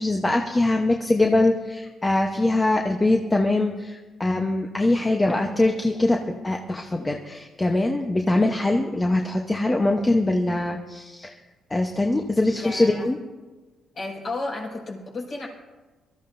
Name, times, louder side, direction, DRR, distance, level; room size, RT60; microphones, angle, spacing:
voice 1, 0.0-6.2 6.4-11.3 11.7-13.2, left 2 dB, 20° left, 2 dB, 1.0 m, -22 dB
voice 2, 12.4-13.1 13.9-15.5, left 2 dB, 45° left, -2 dB, 5.4 m, -33 dB
23.5 x 13.5 x 2.7 m, 1.2 s
cardioid pair, 90°, 0 cm